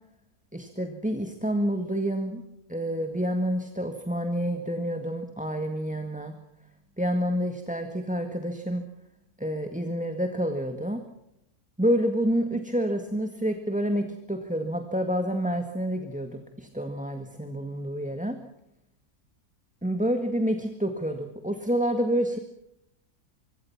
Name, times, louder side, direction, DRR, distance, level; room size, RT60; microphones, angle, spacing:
voice 1, 0.5-2.4 2.7-6.4 7.0-8.9 9.4-11.0 11.8-18.4 19.8-22.4, equal, 5° right, 6 dB, 1.7 m, -28 dB
25.0 x 23.5 x 5.9 m, 0.85 s
omnidirectional pair, 1.6 m